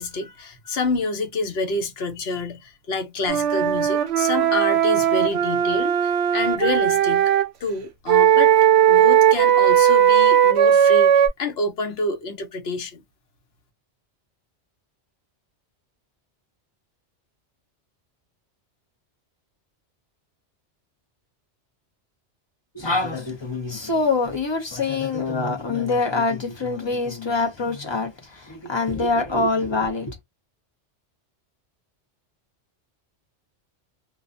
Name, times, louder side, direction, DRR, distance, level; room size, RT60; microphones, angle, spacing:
voice 1, 0.0-7.3 7.6-8.5 8.9-13.0, left 2 dB, 65° left, 1.0 m, -28 dB
Wind instrument woodwind instrument, 3.3-7.5 8.1-11.3, right 9 dB, 70° right, 0.8 m, -17 dB
voice 2, 22.7-30.2, left 3 dB, 30° left, 0.5 m, -25 dB
2.4 x 2.1 x 2.4 m
omnidirectional pair, 1.2 m